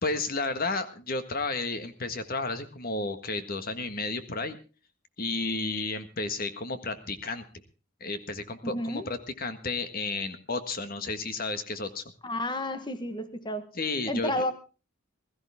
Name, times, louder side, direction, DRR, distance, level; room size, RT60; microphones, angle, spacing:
voice 1, 0.0-4.6 5.2-7.4 8.0-12.0 13.7-14.3, left 3 dB, 45° left, 9 dB, 1.6 m, -32 dB
voice 2, 8.6-9.1 12.2-13.7 14.1-14.5, left 1 dB, 20° left, 9 dB, 1.2 m, -31 dB
21.0 x 14.0 x 3.6 m, 0.34 s
head